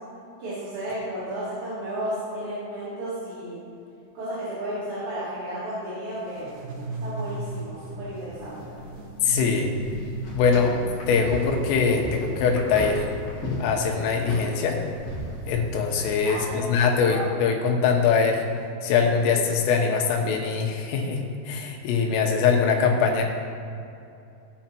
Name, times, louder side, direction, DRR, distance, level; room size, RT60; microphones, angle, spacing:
voice 1, 0.4-3.6 4.1-6.5 7.0-8.8 16.2-16.7 17.0-17.2, right 1 dB, 40° right, -13 dB, 3.6 m, -33 dB
sound 1, 6.2-13.0, right 2 dB, 75° right, 2.1 m, -36 dB
sound 2, 8.3-17.2, left 1 dB, 45° left, 2.2 m, -36 dB
voice 2, 9.2-9.7 10.3-10.8 11.1-13.1 13.6-14.8 15.5-18.5 18.8-23.2, left 5 dB, 80° left, 2 dB, 3.6 m, -22 dB
17.0 x 6.5 x 4.4 m, 2.6 s
omnidirectional pair, 5.8 m